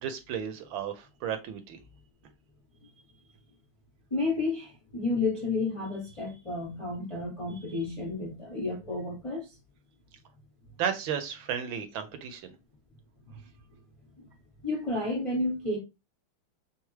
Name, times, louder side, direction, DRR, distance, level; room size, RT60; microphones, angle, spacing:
voice 1, 0.0-1.8 10.8-12.4, right 8 dB, 75° right, 1.3 m, -33 dB
voice 2, 4.1-9.5 14.6-15.8, left 3 dB, 45° left, 0.4 m, -31 dB
3.4 x 3.4 x 3.1 m
omnidirectional pair, 2.4 m